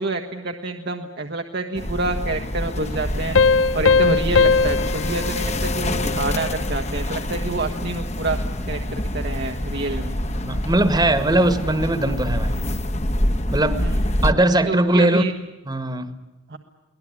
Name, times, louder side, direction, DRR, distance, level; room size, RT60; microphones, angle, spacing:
voice 1, 0.0-3.4 3.7-8.4 8.7-10.1 13.8-14.0 14.6-15.3 16.5-16.6, right 3 dB, 55° right, 1.5 m, -27 dB
sound 1, 1.7-14.3, left 1 dB, 35° left, 1.5 m, -26 dB
Piano, 3.4-6.6, left 4 dB, 85° left, 0.9 m, -20 dB
voice 2, 10.4-12.6 13.5-13.8 14.2-15.2 15.7-16.1, right 1 dB, 20° right, 1.7 m, -20 dB
23.0 x 19.0 x 9.8 m
head